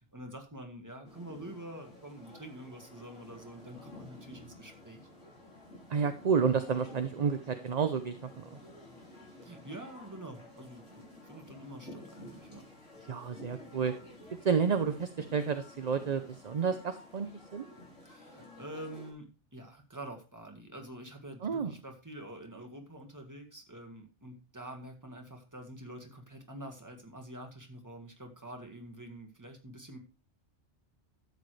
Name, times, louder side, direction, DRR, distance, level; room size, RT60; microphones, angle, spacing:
voice 1, 0.0-5.1 9.4-12.7 18.0-30.0, right 1 dB, 15° right, 3 dB, 1.8 m, -47 dB
sound 1, 1.0-19.1, left 2 dB, 80° left, 4.1 m, -52 dB
voice 2, 5.9-8.6 13.1-13.9 14.4-17.6 21.4-21.7, right 6 dB, 45° right, 8 dB, 0.7 m, -30 dB
12.5 x 8.3 x 3.3 m, 0.32 s
omnidirectional pair, 1.2 m